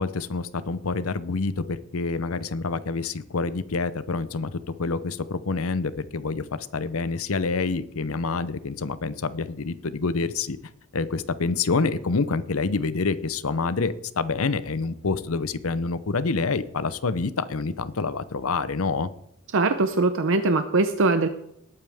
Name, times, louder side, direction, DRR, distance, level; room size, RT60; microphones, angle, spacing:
voice 1, 0.0-10.6 10.9-19.1, left 4 dB, 70° left, 15 dB, 0.7 m, -27 dB
voice 2, 19.5-21.3, right 3 dB, 60° right, 8 dB, 0.7 m, -21 dB
19.5 x 8.8 x 3.5 m, 0.76 s
head